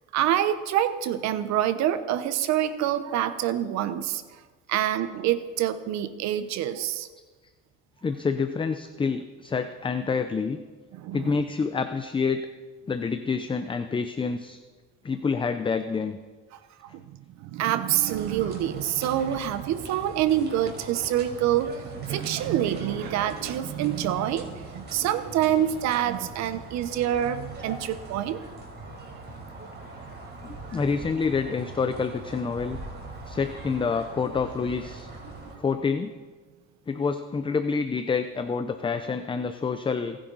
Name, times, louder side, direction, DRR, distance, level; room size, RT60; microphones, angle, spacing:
voice 1, 0.1-4.4 4.7-7.1 10.9-11.4 16.8-28.4 30.7-30.8 35.3-35.6, right 11 dB, 70° right, 12 dB, 1.0 m, -26 dB
voice 2, 8.0-10.6 11.1-12.4 12.9-14.6 15.0-16.2 30.4-32.8 33.3-35.1 35.6-36.1 36.9-40.2, left 5 dB, 15° left, 9 dB, 0.6 m, -27 dB
sound 1, 18.0-35.6, right 2 dB, 35° right, 4.2 m, -41 dB
28.0 x 10.5 x 4.1 m, 1.4 s
cardioid pair, 120°, 29 cm